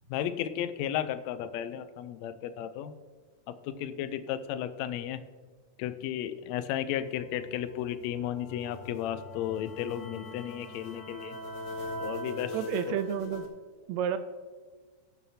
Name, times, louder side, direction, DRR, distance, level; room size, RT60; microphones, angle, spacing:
voice 1, 0.1-2.9 3.5-5.2 5.8-11.4 12.0-12.6 12.9-13.0, left 10 dB, 80° left, 11 dB, 1.6 m, -34 dB
sound 1, 7.0-13.5, left 1 dB, 60° left, 1.1 m, -41 dB
voice 2, 12.5-13.5 13.9-14.2, right 8 dB, 80° right, 10 dB, 1.6 m, -30 dB
18.0 x 7.3 x 2.8 m, 1.4 s
omnidirectional pair, 3.6 m